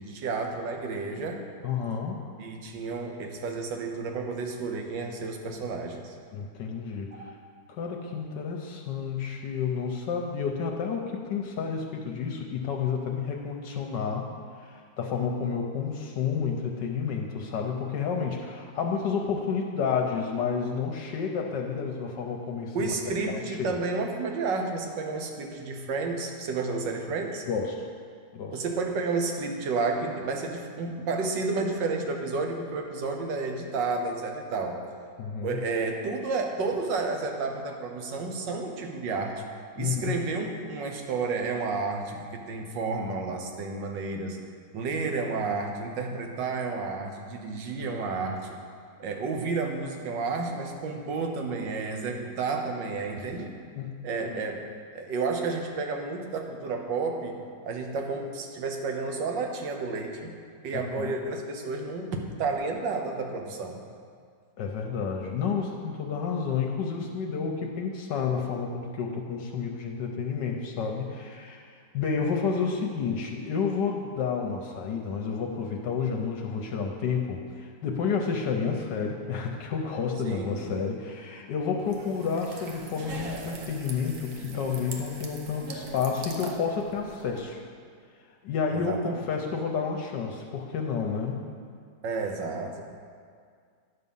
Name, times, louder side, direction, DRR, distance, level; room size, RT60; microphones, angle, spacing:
voice 1, 0.0-1.5 2.4-6.1 7.1-7.3 22.7-27.4 28.5-34.8 35.4-39.4 39.8-44.4 44.7-48.6 49.0-53.5 54.0-54.7 54.9-60.3 60.6-63.8 80.2-80.7 88.7-89.2 92.0-92.8, right 4 dB, 85° right, 3 dB, 1.6 m, -31 dB
voice 2, 1.6-2.3 6.3-7.3 7.7-14.3 14.6-22.9 23.3-23.7 27.5-27.9 28.3-28.6 35.2-35.6 39.8-40.1 53.7-54.4 60.8-61.1 64.6-87.6 88.4-91.4, left 6 dB, 75° left, 1 dB, 1.4 m, -30 dB
sound 1, 81.8-87.4, right 3 dB, 60° right, 1.4 m, -42 dB
10.0 x 6.7 x 5.5 m, 2.1 s
omnidirectional pair, 1.9 m